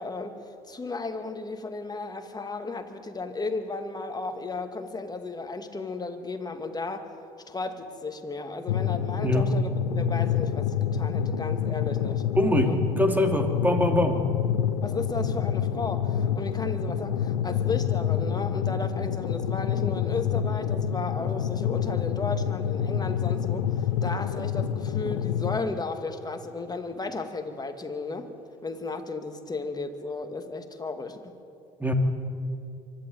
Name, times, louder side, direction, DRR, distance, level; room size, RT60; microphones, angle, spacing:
voice 1, 0.0-7.1 7.5-12.3 12.6-12.8 14.8-28.3 28.6-31.4, left 3 dB, 20° left, 6 dB, 2.3 m, -34 dB
sound 1, 8.7-25.6, left 9 dB, 80° left, 0.9 m, -27 dB
voice 2, 12.3-14.2 31.8-31.9, equal, 10° right, 4 dB, 2.9 m, -23 dB
24.5 x 12.0 x 9.3 m, 2.5 s
hypercardioid pair, 60°, 18 cm